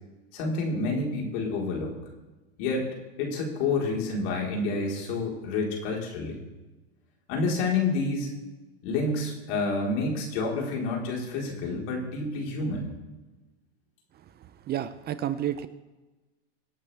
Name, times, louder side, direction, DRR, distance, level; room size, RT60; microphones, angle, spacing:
voice 1, 0.3-2.0 2.6-2.9 3.2-6.4 7.3-8.3 8.8-12.9, left 3 dB, 60° left, -1 dB, 4.4 m, -29 dB
voice 2, 14.7-15.7, right 11 dB, 30° right, 13 dB, 0.7 m, -30 dB
25.5 x 8.5 x 3.5 m, 1.1 s
hypercardioid pair, 110°, 33 cm